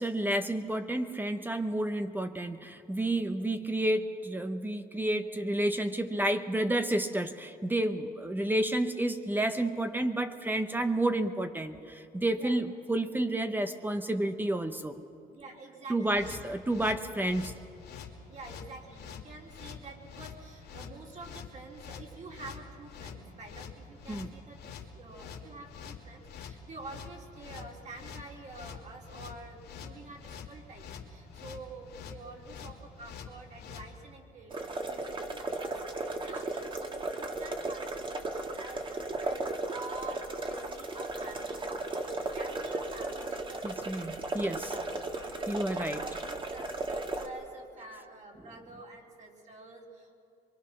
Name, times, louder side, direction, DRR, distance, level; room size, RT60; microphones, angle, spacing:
voice 1, 0.0-15.0 15.9-17.5 24.1-24.3 43.6-44.7 45.5-46.0, right 1 dB, 10° right, 8 dB, 0.9 m, -30 dB
voice 2, 15.3-16.4 18.3-44.9 45.2-50.1, right 3 dB, 45° right, 0 dB, 3.8 m, -48 dB
sound 1, 16.1-33.9, left 7 dB, 85° left, 2.5 m, -46 dB
sound 2, 34.5-47.3, right 2 dB, 30° right, 1.9 m, -36 dB
24.0 x 23.5 x 6.1 m, 2.6 s
cardioid pair, 110°, 17 cm